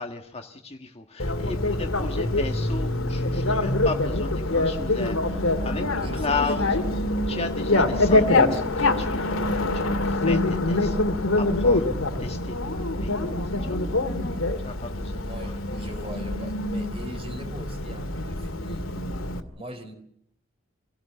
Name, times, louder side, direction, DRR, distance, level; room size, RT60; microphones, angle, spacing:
voice 1, 0.0-6.8 7.3-9.3 9.6-11.0 11.3-11.9 12.2-14.0 14.6-15.9, left 3 dB, 30° left, 4 dB, 1.6 m, -35 dB
Bicycle, 1.2-19.4, left 2 dB, 75° left, 2.3 m, -25 dB
voice 2, 6.0-6.7 15.2-19.0 19.6-19.9, right 1 dB, 25° right, 8 dB, 3.9 m, -41 dB
26.0 x 17.5 x 7.0 m, 0.71 s
head